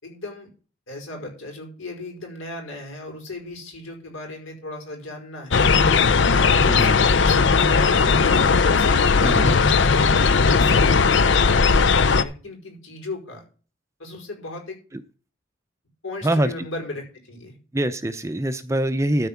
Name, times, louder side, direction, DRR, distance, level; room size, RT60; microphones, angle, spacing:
voice 1, 0.0-0.5 0.9-5.6 6.5-8.2 8.6-13.4 14.0-14.8 16.0-17.6, left 2 dB, 80° left, 0 dB, 4.9 m, -36 dB
sound 1, 5.5-12.2, left 5 dB, 60° left, 0.6 m, -17 dB
voice 2, 6.7-7.0 9.2-9.5 16.2-16.5 17.7-19.3, right 1 dB, 15° right, 10 dB, 0.6 m, -23 dB
13.0 x 4.7 x 7.1 m, 0.38 s
head